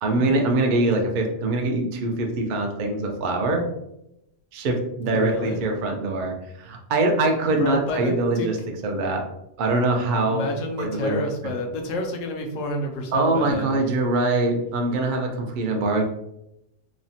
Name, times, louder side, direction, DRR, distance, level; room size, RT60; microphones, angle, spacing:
voice 1, 0.0-3.6 4.5-8.6 8.8-9.2 9.6-10.5 10.8-11.2 13.1-16.0, right 2 dB, 60° right, 2 dB, 0.5 m, -23 dB
voice 2, 5.1-5.6 7.6-8.5 10.3-13.7, left 1 dB, 80° left, 3 dB, 1.0 m, -29 dB
3.1 x 2.1 x 2.6 m, 0.83 s
omnidirectional pair, 1.3 m